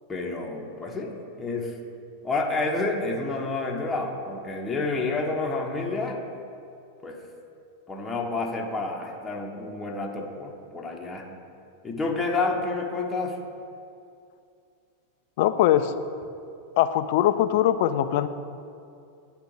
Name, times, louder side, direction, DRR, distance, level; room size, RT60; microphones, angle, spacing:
voice 1, 0.1-1.7 2.2-6.2 7.0-7.2 7.9-11.3 11.8-13.4, left 3 dB, 15° left, -1 dB, 0.8 m, -29 dB
voice 2, 15.4-15.9 16.8-18.3, left 12 dB, 50° left, 11 dB, 0.3 m, -21 dB
9.5 x 3.3 x 4.8 m, 2.5 s
figure-of-eight pair, 90°, 0 cm